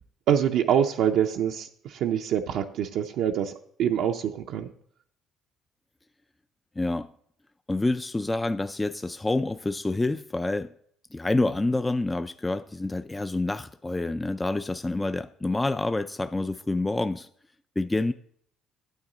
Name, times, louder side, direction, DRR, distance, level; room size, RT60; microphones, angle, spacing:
voice 1, 0.3-3.5 3.8-4.7, right 9 dB, 70° right, 0.5 m, -25 dB
voice 2, 6.8-7.1 7.7-10.7 11.1-17.3 17.8-18.1, left 2 dB, 15° left, 0.3 m, -27 dB
8.9 x 8.3 x 3.9 m
supercardioid pair, 75°, 0 cm